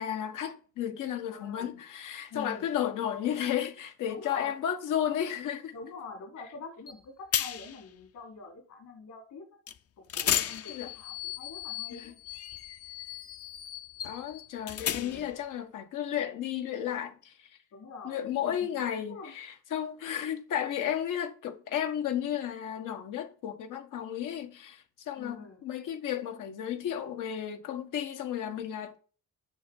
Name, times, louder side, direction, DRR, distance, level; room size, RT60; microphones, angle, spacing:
voice 1, 0.0-5.7 10.7-10.9 11.9-12.1 14.0-17.3 18.0-29.0, left 10 dB, 85° left, 1.6 m, -33 dB
voice 2, 1.3-1.8 2.3-2.7 4.1-4.6 5.7-9.6 10.1-12.1 14.9-15.3 17.7-18.5 19.0-19.3 25.2-25.6, left 4 dB, 70° left, 4.5 m, -45 dB
sound 1, 6.9-7.0 7.3-7.8 9.7-9.8 10.1-15.4, left 10 dB, 50° left, 0.7 m, -34 dB
9.1 x 7.1 x 5.5 m
cardioid pair, 135°, 30 cm